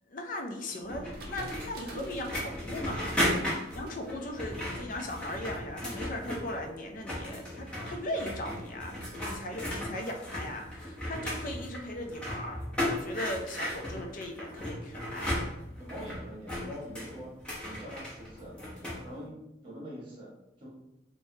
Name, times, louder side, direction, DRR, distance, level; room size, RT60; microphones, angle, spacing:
voice 1, 0.1-8.9 9.2-12.6 12.9-15.3, left 1 dB, 50° left, 3 dB, 0.4 m, -38 dB
sound 1, 0.9-6.7 6.9-19.0, left 1 dB, 5° left, 0.8 m, -36 dB
sound 2, 1.1-5.0, right 1 dB, 60° right, 0.5 m, -46 dB
voice 2, 15.8-17.3 17.6-18.5 19.0-19.3 19.6-20.7, equal, 30° right, -5 dB, 1.0 m, -44 dB
3.1 x 2.1 x 2.7 m, 0.87 s
head